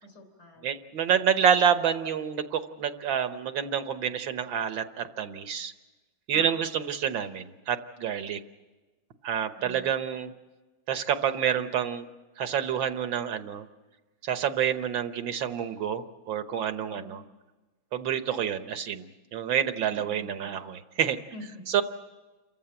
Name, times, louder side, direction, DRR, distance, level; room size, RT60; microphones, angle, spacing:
voice 1, 0.0-0.7 6.3-6.6 9.6-9.9 16.9-17.3 19.9-20.5 21.3-21.7, equal, 50° left, 4 dB, 3.9 m, -46 dB
voice 2, 0.6-5.7 6.3-8.4 9.2-10.3 10.9-12.1 12.4-13.7 14.2-17.2 17.9-21.2 21.7-21.8, right 8 dB, 70° right, 9 dB, 1.8 m, -28 dB
28.5 x 15.0 x 8.8 m, 1.2 s
omnidirectional pair, 2.2 m